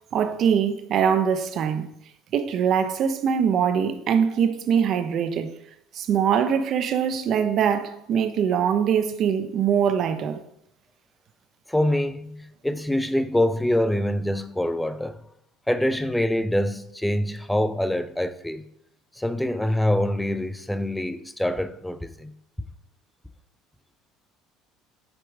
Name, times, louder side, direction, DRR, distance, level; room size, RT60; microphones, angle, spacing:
voice 1, 0.1-1.9 2.3-5.5 5.9-10.4, right 7 dB, 50° right, 0.8 m, -23 dB
voice 2, 11.7-15.2 15.7-18.7 19.2-22.3, left 1 dB, 5° left, 0.6 m, -25 dB
8.3 x 5.3 x 4.8 m
cardioid pair, 115°, 0 cm